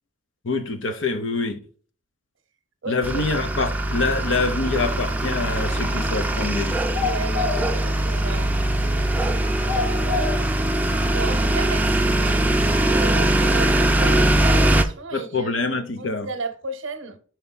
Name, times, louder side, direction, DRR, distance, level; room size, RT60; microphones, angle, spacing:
voice 1, 0.4-1.6 2.9-6.8 15.1-16.3, left 3 dB, 70° left, 0.8 m, -25 dB
voice 2, 2.8-3.2 7.0-8.9 9.5-10.3 11.1-12.6 12.9-17.2, right 3 dB, 85° right, 0.8 m, -34 dB
sound 1, 3.0-14.8, right 1 dB, 10° right, 0.4 m, -21 dB
sound 2, 4.7-13.0, left 4 dB, 45° left, 1.5 m, -34 dB
5.6 x 4.6 x 3.9 m
head